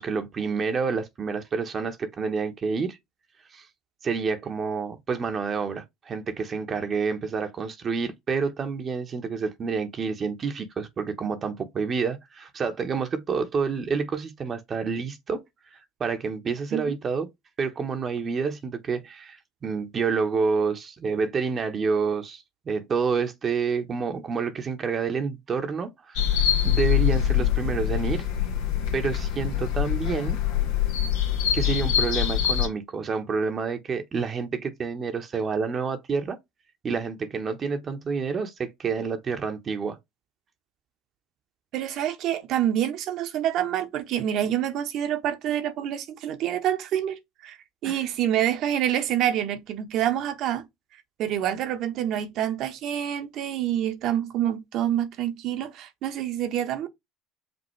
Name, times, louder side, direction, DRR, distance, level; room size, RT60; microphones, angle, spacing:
voice 1, 0.0-3.0 3.5-3.7 4.0-15.4 15.7-17.3 17.6-28.2 28.9-30.4 31.5-36.4 36.8-40.0 47.8-48.0, right 5 dB, 35° right, 1.0 m, -28 dB
sound 1, 26.2-32.7, left 10 dB, 80° left, 1.6 m, -24 dB
voice 2, 41.7-47.6 47.8-50.6 51.2-56.9, right 11 dB, 60° right, 1.1 m, -27 dB
5.3 x 2.7 x 3.2 m
supercardioid pair, 90°, 0 cm